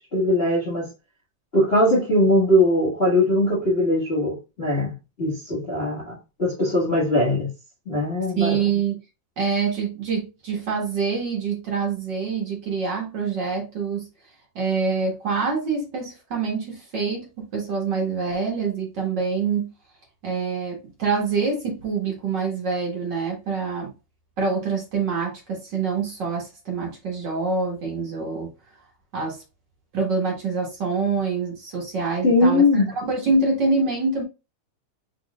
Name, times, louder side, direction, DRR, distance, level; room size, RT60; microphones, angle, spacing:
voice 1, 0.1-0.9 1.5-4.9 5.2-7.5 7.9-8.6 32.2-32.9, left 1 dB, 35° left, 0.9 m, -20 dB
voice 2, 8.4-9.0 9.4-14.1 14.5-19.7 20.2-23.9 24.4-28.5 29.1-29.4 29.9-34.2, right 4 dB, 50° right, 1.4 m, -25 dB
4.9 x 3.8 x 2.4 m
omnidirectional pair, 3.7 m